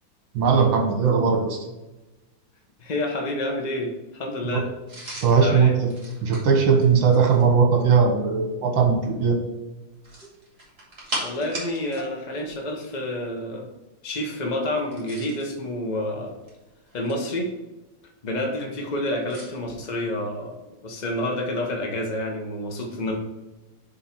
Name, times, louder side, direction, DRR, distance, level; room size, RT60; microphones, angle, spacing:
voice 1, 0.3-1.6 4.4-4.6 5.2-5.9 6.2-9.4, right 5 dB, 65° right, 2 dB, 1.8 m, -19 dB
voice 2, 2.8-4.7 5.4-5.8 11.2-13.7 14.0-16.4 16.9-17.5 18.2-20.6 20.8-23.2, left 1 dB, 85° left, 1 dB, 0.4 m, -28 dB
sound 1, 4.9-7.5 10.0-12.1 12.4-12.6 14.8-15.5 16.3-17.4 19.3-19.5, right 1 dB, 30° right, 2.4 m, -37 dB
6.9 x 3.6 x 4.5 m, 1.1 s
omnidirectional pair, 2.4 m